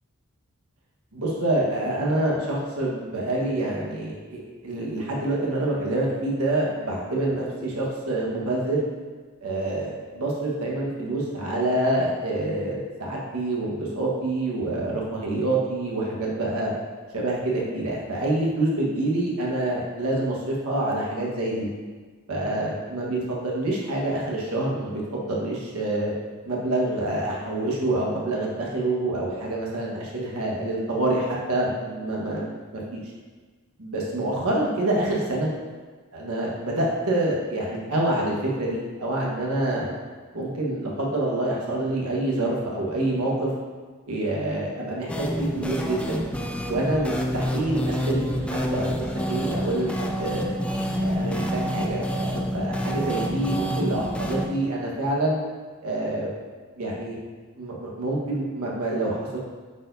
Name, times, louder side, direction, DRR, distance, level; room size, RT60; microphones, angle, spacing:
voice 1, 1.1-8.8 9.4-16.7 17.1-21.7 22.3-26.1 26.4-33.0 33.8-35.5 36.1-39.9 40.3-43.5 44.1-46.2 46.7-50.5 51.0-55.4 55.8-56.3 56.8-57.2 57.6-59.4, right 1 dB, 85° right, -3 dB, 1.3 m, -27 dB
sound 1, 45.1-54.5, equal, 5° left, 0.4 m, -28 dB
8.7 x 4.5 x 2.6 m, 1.4 s
head